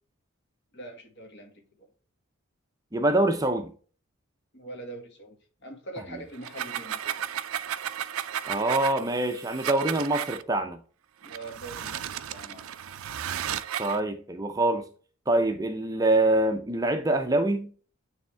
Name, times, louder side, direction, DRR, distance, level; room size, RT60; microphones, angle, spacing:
voice 1, 0.7-1.5 1.8-1.9 4.5-5.4 5.6-7.2 11.2-12.7, right 2 dB, 55° left, 1.8 m, -43 dB
voice 2, 2.9-3.7 8.5-10.8 13.8-14.9 15.3-17.7, right 2 dB, 15° right, 0.5 m, -25 dB
sound 1, 6.3-10.4 11.2-14.0, right 9 dB, 75° right, 0.4 m, -34 dB
9.3 x 3.5 x 3.4 m
head